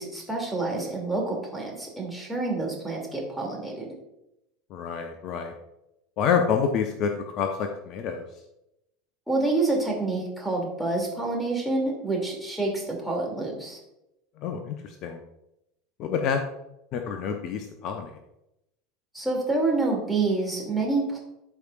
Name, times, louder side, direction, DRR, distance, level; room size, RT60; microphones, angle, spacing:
voice 1, 0.0-3.9 9.3-13.8 19.1-21.2, right 3 dB, ahead, -2 dB, 2.6 m, -27 dB
voice 2, 4.7-5.5 6.2-8.2 14.4-15.2 16.0-16.4 16.9-18.2, left 6 dB, 50° left, 5 dB, 0.7 m, -28 dB
12.5 x 4.9 x 2.5 m, 0.86 s
figure-of-eight pair, 75°, 0 cm